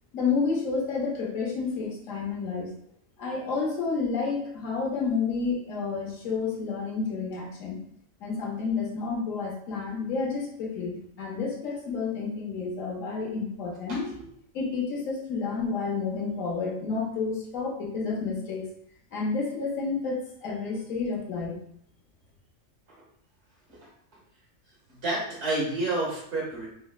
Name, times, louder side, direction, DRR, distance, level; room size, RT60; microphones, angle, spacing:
voice 1, 0.1-2.7 3.2-7.8 8.2-14.1 14.5-18.6 19.1-21.6, left 4 dB, 75° left, -2 dB, 1.2 m, -30 dB
voice 2, 13.9-14.3 23.7-23.8 25.0-26.7, right 2 dB, 60° right, -5 dB, 1.4 m, -30 dB
3.9 x 2.1 x 2.3 m, 0.68 s
omnidirectional pair, 1.4 m